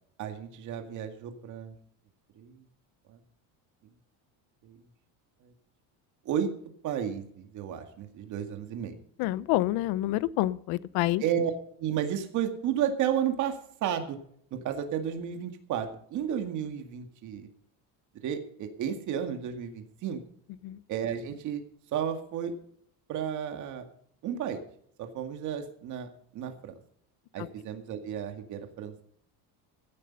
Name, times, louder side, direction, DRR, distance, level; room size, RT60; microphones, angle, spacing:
voice 1, 0.2-1.7 2.4-2.6 3.1-3.2 4.6-4.8 5.4-5.5 6.3-6.5 6.8-8.9 11.2-11.5 11.8-14.2 14.5-17.5 18.2-20.2 20.9-21.6 21.9-22.5 23.1-23.8 24.2-24.6 25.0-26.7 27.3-29.0, right 9 dB, 45° right, 5 dB, 2.1 m, -32 dB
voice 2, 9.2-11.2 20.6-20.8 27.4-27.5, left 16 dB, 65° left, 19 dB, 0.8 m, -28 dB
16.5 x 10.0 x 5.4 m, 0.64 s
cardioid pair, 165°, 40 cm